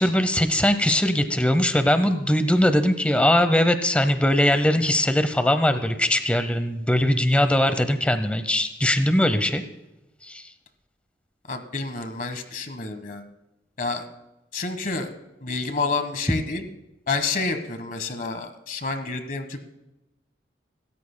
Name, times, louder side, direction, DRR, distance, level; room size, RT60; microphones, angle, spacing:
voice 1, 0.0-9.6 10.3-10.4, left 1 dB, 5° left, 10 dB, 0.7 m, -21 dB
voice 2, 11.5-13.2 13.8-14.0 14.5-15.1 15.4-16.6 17.1-19.7, left 3 dB, 45° left, 8 dB, 1.3 m, -29 dB
26.5 x 13.5 x 2.2 m, 0.95 s
head